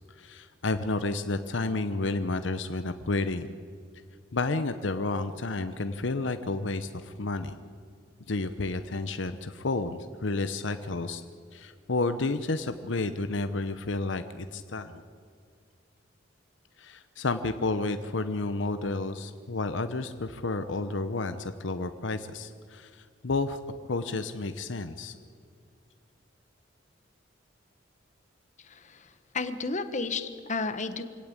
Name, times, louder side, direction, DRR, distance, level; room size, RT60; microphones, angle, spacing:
voice 1, 0.2-3.5 4.3-7.6 8.3-11.2 11.5-15.0 16.8-23.6 23.9-25.1, left 3 dB, 70° left, 10 dB, 0.9 m, -31 dB
voice 2, 28.6-31.0, left 3 dB, 40° left, 10 dB, 1.3 m, -33 dB
24.5 x 17.5 x 8.8 m, 2.2 s
head